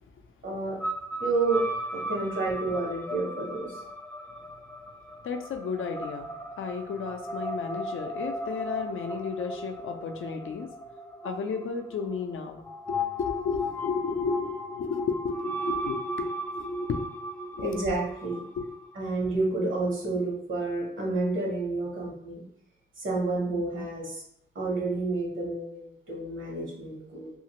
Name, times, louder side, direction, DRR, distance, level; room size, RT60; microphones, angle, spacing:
voice 1, 0.4-0.8 1.2-1.6 1.9-3.7 17.6-18.4 18.9-22.4 23.0-24.2 24.5-27.3, right 3 dB, 75° right, -2 dB, 1.1 m, -30 dB
sound 1, 0.8-18.9, equal, 10° left, 0.4 m, -36 dB
voice 2, 5.2-6.3 6.6-10.7 11.2-17.0 17.5-17.8 18.6-18.7, left 5 dB, 75° left, 6 dB, 0.4 m, -33 dB
2.8 x 2.5 x 2.9 m, 0.70 s
wide cardioid pair, 75°, 21 cm